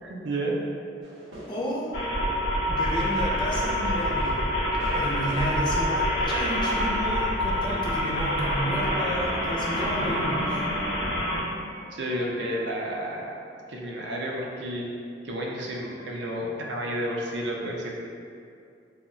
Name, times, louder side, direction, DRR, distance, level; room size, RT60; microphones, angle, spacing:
voice 1, 0.0-0.6 11.9-13.4 13.7-14.9 15.2-18.0, right 1 dB, 65° right, -1 dB, 0.4 m, -31 dB
sound 1, 1.0-6.0, right 1 dB, 85° right, 0.8 m, -45 dB
voice 2, 1.5-1.9 2.7-4.4 4.9-10.6, equal, 25° left, -4 dB, 0.4 m, -31 dB
sound 2, 1.9-11.4, equal, 85° left, 0.6 m, -26 dB
sound 3, 6.3-11.0 11.6-13.0, right 1 dB, 30° right, 0.7 m, -44 dB
2.3 x 2.0 x 3.7 m, 2.4 s
head